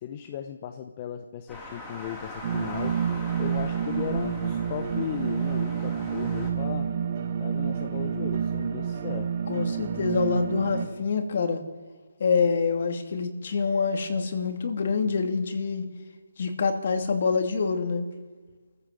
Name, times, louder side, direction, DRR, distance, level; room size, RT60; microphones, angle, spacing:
voice 1, 0.0-3.0 3.4-6.9 7.4-9.3, left 9 dB, 25° left, 6 dB, 1.0 m, -36 dB
sound 1, 1.5-6.5, left 1 dB, 10° left, 3.5 m, -41 dB
sound 2, 2.4-10.9, right 7 dB, 40° right, 1.8 m, -29 dB
voice 2, 9.5-11.6 12.2-15.9 16.4-18.1, left 5 dB, 50° left, 5 dB, 2.7 m, -26 dB
27.0 x 15.0 x 7.7 m, 1.4 s
hypercardioid pair, 165°, 0 cm